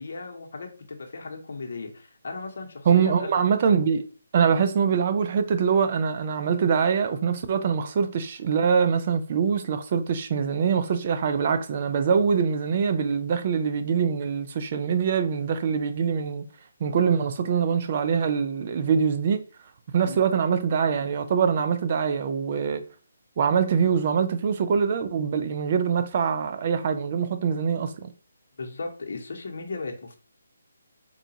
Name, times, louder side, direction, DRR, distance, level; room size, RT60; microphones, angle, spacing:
voice 1, 0.0-3.5 20.0-20.2 28.6-30.2, left 3 dB, 60° left, 0.8 m, -36 dB
voice 2, 2.9-4.1 4.3-16.4 16.8-19.5 19.9-22.8 23.4-28.1, right 6 dB, 40° right, 0.4 m, -24 dB
3.8 x 2.3 x 2.8 m
figure-of-eight pair, 150°, 0 cm